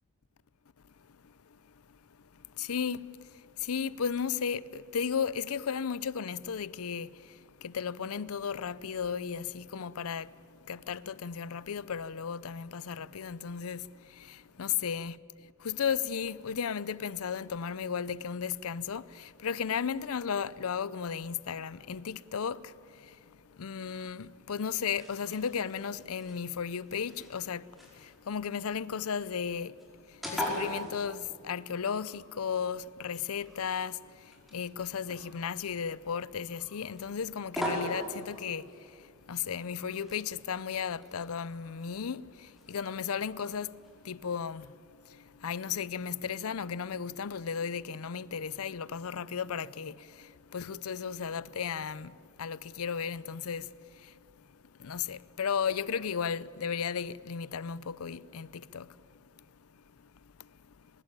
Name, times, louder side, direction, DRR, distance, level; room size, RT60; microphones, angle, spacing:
voice 1, 2.6-3.1 3.6-10.3 10.7-15.2 15.6-23.2 23.6-27.7 27.9-29.7 30.1-39.0 39.3-43.8 44.0-44.7 45.1-53.7 54.0-54.1 54.8-58.9, left 7 dB, 75° left, 0.5 m, -35 dB
sound 1, 24.4-44.1, equal, ahead, 5.2 m, -43 dB
24.0 x 20.5 x 9.1 m
head